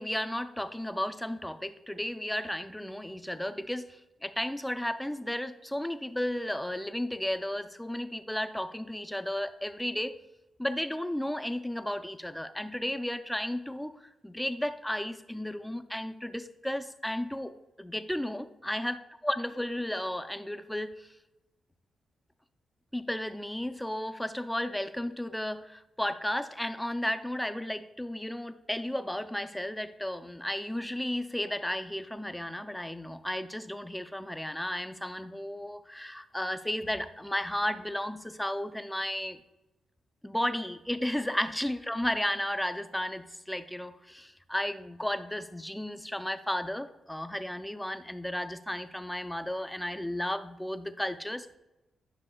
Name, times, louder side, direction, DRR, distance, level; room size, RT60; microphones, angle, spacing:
voice 1, 0.0-10.1 10.6-13.9 14.2-21.1 22.9-39.4 40.2-51.5, left 1 dB, 5° left, 10 dB, 0.4 m, -34 dB
9.8 x 6.0 x 2.2 m, 0.99 s
cardioid pair, 80°, 0 cm